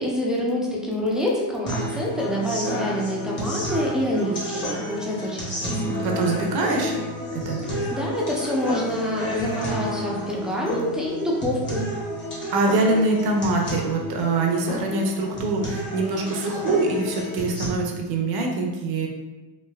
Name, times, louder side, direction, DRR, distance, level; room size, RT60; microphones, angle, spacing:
voice 1, 0.0-6.0 7.7-11.9, left 1 dB, ahead, -4 dB, 0.4 m, -27 dB
sound 1, 1.7-17.7, equal, 25° left, 0.9 m, -30 dB
voice 2, 6.0-7.0 7.3-7.6 12.5-19.1, right 3 dB, 65° right, 1 dB, 0.6 m, -24 dB
3.2 x 2.7 x 2.3 m, 1.1 s
cardioid pair, 125°, 41 cm